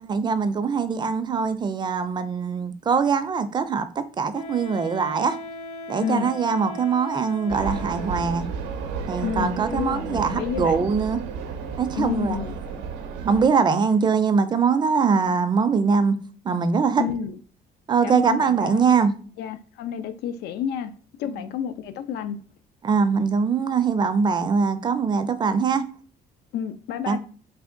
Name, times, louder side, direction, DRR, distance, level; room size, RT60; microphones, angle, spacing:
voice 1, 0.0-3.8 4.2-5.4 5.9-8.5 9.1-11.2 11.8-12.4 13.2-16.2 16.4-17.0 17.9-19.2 21.3-21.4 22.8-25.8 27.1-27.2, right 5 dB, 25° right, 0.4 m, -22 dB
Wind instrument woodwind instrument, 4.3-8.4, left 2 dB, 35° left, 0.8 m, -38 dB
voice 2, 6.0-6.3 9.2-10.9 12.0-12.5 17.0-17.4 18.0-18.8 19.4-20.9 21.2-22.4 26.5-27.2, left 8 dB, 75° left, 0.4 m, -30 dB
sound 1, 7.5-13.5, right 5 dB, 90° right, 0.6 m, -32 dB
3.4 x 2.1 x 3.7 m
cardioid pair, 110°, 17 cm